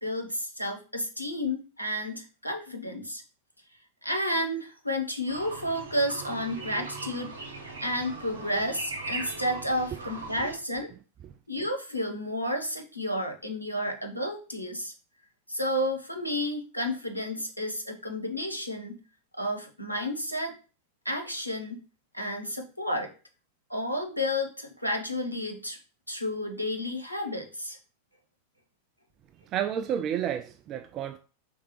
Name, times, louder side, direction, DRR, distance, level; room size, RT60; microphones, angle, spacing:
voice 1, 0.0-3.2 4.0-7.3 7.8-10.9 11.5-14.9 15.5-19.0 19.4-20.5 21.0-21.8 22.1-23.1 23.7-25.8 26.1-27.8, left 1 dB, 90° left, 0.9 m, -31 dB
sound 1, 5.3-10.6, right 3 dB, 75° right, 0.9 m, -39 dB
voice 2, 29.5-31.2, right 9 dB, 35° right, 0.3 m, -30 dB
4.5 x 3.5 x 3.0 m
figure-of-eight pair, 90°, 0 cm